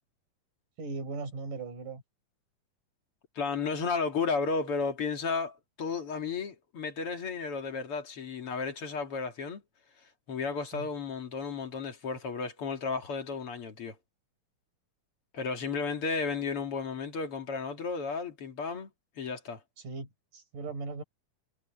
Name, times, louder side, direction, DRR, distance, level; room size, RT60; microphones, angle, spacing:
voice 1, 0.8-2.0 10.7-10.9 19.8-21.0, right 3 dB, 80° right, 7.3 m, -38 dB
voice 2, 3.4-9.6 10.3-14.0 15.3-18.9 19.2-19.6, left 4 dB, 45° left, 2.9 m, -33 dB
omnidirectional pair, 3.6 m